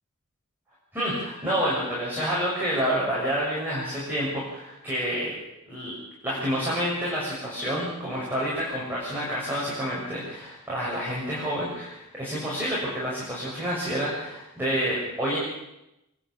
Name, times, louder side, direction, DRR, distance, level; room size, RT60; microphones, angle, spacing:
voice 1, 0.9-5.4 5.7-5.9 6.2-15.4, equal, 10° right, -7 dB, 6.9 m, -28 dB
28.5 x 11.5 x 8.6 m, 0.90 s
head